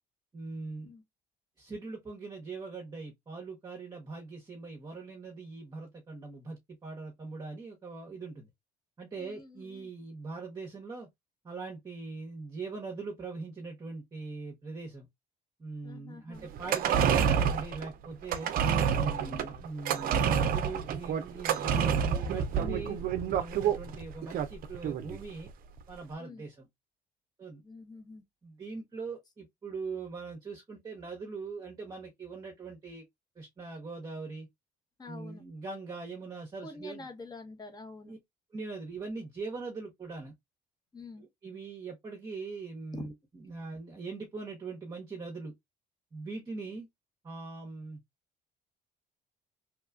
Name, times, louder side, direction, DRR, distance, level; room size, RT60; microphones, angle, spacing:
voice 1, 0.3-0.9 1.6-8.5 9.0-11.1 11.4-15.1 15.6-18.5 18.8-25.5 25.9-26.7 27.4-27.6 28.4-33.0 33.4-34.5 35.0-37.1 38.1-38.2 38.5-40.3 41.2-45.5 46.1-46.9 47.2-48.0, right 4 dB, 25° right, 0.9 m, -41 dB
voice 2, 9.2-9.9 15.8-16.5 19.2-19.4 26.2-26.4 27.6-28.2 35.0-35.4 36.6-38.1 40.9-41.2 42.9-43.0, left 3 dB, 25° left, 0.8 m, -47 dB
sound 1, 16.5-25.2 25.5-25.6, right 7 dB, 60° right, 0.5 m, -28 dB
2.9 x 2.3 x 2.3 m
cardioid pair, 110°, 17 cm